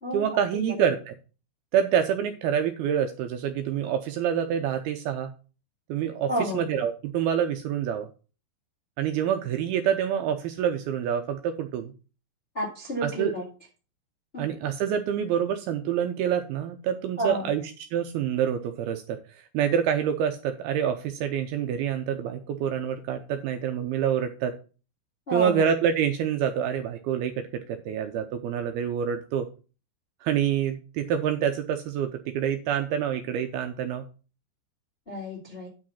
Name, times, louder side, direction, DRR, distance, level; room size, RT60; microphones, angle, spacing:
voice 1, 0.1-1.1 1.7-5.3 5.9-8.1 9.0-11.9 13.0-13.4 14.4-17.6 17.9-24.5 25.3-27.3 27.7-29.5 30.2-34.1, right 8 dB, 80° right, 6 dB, 2.4 m, -27 dB
voice 2, 6.3-6.6 12.5-13.4 14.3-14.4 17.2-17.5 25.3-25.6 35.1-35.7, equal, 20° left, -3 dB, 1.5 m, -30 dB
9.4 x 5.2 x 5.6 m, 0.35 s
omnidirectional pair, 5.0 m